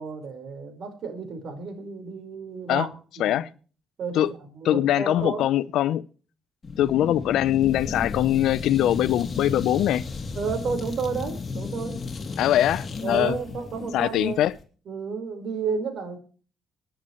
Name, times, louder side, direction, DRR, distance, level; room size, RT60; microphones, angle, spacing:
voice 1, 0.0-2.9 3.2-3.4 4.0-4.2 4.5-5.4 10.3-12.0 13.0-14.4 14.9-16.2, right 5 dB, 65° right, 4.7 m, -31 dB
voice 2, 4.6-6.1 6.8-10.0 12.4-13.4 13.9-14.6, left 12 dB, 80° left, 0.7 m, -22 dB
sound 1, 6.6-14.6, left 4 dB, 30° left, 3.2 m, -34 dB
24.0 x 10.0 x 3.1 m
cardioid pair, 90°, 0 cm